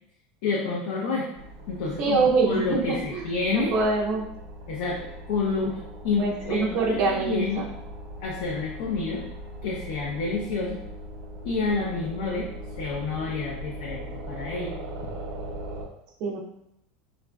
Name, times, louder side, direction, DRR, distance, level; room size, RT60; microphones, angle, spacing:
voice 1, 0.4-1.3 1.7-3.8 4.7-5.8 6.0-7.6 8.2-9.2 9.6-10.8 11.4-12.5 12.8-14.8, left 4 dB, 55° left, -2 dB, 0.5 m, -29 dB
sound 1, 1.3-15.9, right 1 dB, 85° right, 0.8 m, -40 dB
voice 2, 2.0-3.2 3.5-4.2 6.2-7.6 16.2-16.4, right 3 dB, 40° right, -5 dB, 0.5 m, -24 dB
4.0 x 2.4 x 2.2 m, 0.76 s
supercardioid pair, 175°, 0 cm